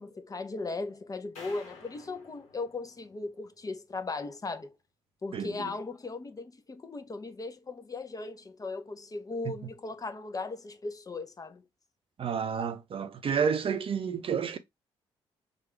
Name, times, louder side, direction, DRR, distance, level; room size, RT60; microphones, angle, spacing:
voice 1, 0.0-4.7 5.2-11.6, left 3 dB, 25° left, 0.7 m, -37 dB
sound 1, 1.4-3.7, left 4 dB, 55° left, 1.3 m, -52 dB
voice 2, 5.3-5.7 12.2-14.6, right 7 dB, 40° right, 0.6 m, -30 dB
3.3 x 2.4 x 4.4 m
figure-of-eight pair, 40°, 14 cm